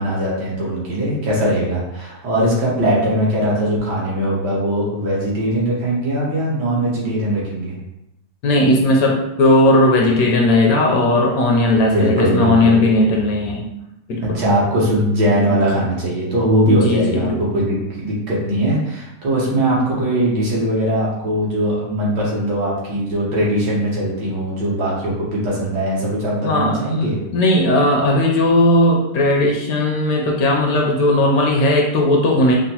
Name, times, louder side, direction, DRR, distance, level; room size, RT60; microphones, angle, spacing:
voice 1, 0.0-7.7 11.9-12.8 14.2-27.2, right 1 dB, 85° right, -5 dB, 1.7 m, -20 dB
voice 2, 8.4-13.7 14.1-14.4 16.7-17.4 26.4-26.8 27.3-32.6, left 1 dB, 70° left, 0 dB, 0.9 m, -16 dB
4.9 x 2.0 x 2.8 m, 0.87 s
omnidirectional pair, 1.8 m